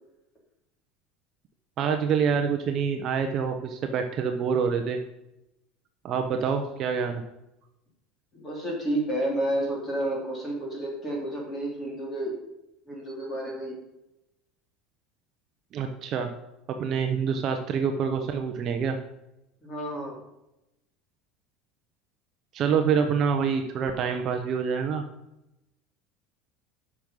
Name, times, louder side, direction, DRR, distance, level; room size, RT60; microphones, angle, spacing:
voice 1, 1.8-5.0 6.0-7.2 15.7-16.3 16.7-19.0 22.5-25.0, right 6 dB, 30° right, 5 dB, 0.7 m, -26 dB
voice 2, 8.3-12.3 12.9-13.8 19.6-20.2, right 1 dB, 15° left, -1 dB, 2.8 m, -30 dB
9.8 x 6.1 x 5.4 m, 0.89 s
cardioid pair, 180°, 0 cm